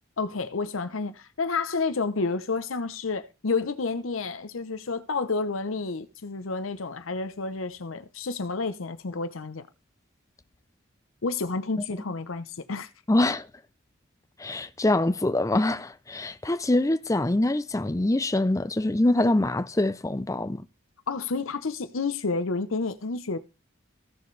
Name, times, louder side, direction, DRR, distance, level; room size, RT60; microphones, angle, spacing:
voice 1, 0.2-9.7 11.2-12.9 21.1-23.4, left 4 dB, 85° left, 0.8 m, -30 dB
voice 2, 13.1-13.5 14.4-20.7, left 1 dB, 15° left, 0.5 m, -24 dB
15.5 x 6.7 x 3.3 m
head